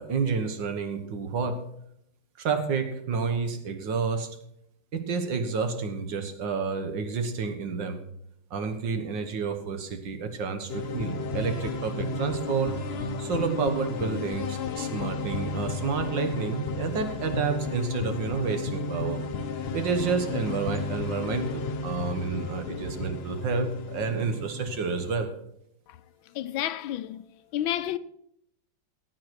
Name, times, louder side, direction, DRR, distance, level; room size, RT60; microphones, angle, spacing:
voice 1, 0.0-1.6 2.4-4.3 4.9-8.0 8.5-12.8 13.2-19.2 19.7-25.3, right 5 dB, 65° right, 2.0 m, -29 dB
sound 1, 10.7-25.1, left 3 dB, 65° left, 0.6 m, -33 dB
voice 2, 26.3-27.2 27.5-28.0, left 12 dB, 80° left, 1.4 m, -30 dB
16.5 x 9.1 x 4.7 m
omnidirectional pair, 2.2 m